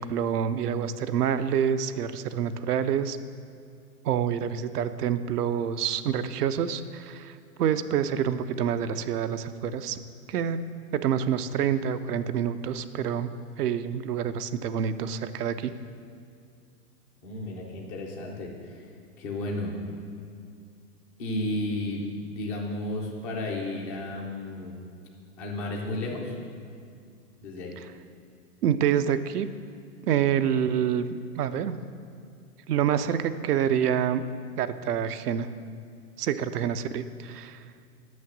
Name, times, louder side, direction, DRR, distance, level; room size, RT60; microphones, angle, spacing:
voice 1, 0.0-3.2 4.0-10.0 10.3-10.6 10.9-13.3 13.6-15.7 28.6-29.5 30.1-31.8 32.7-34.2 34.6-35.5 36.2-37.6, right 8 dB, 75° right, 11 dB, 0.6 m, -27 dB
voice 2, 17.2-18.9 19.2-19.8 21.2-22.1 22.4-24.8 25.4-26.4 27.4-27.8, left 1 dB, 15° left, -1 dB, 0.3 m, -33 dB
6.3 x 5.8 x 7.0 m, 2.3 s
hypercardioid pair, 115°, 47 cm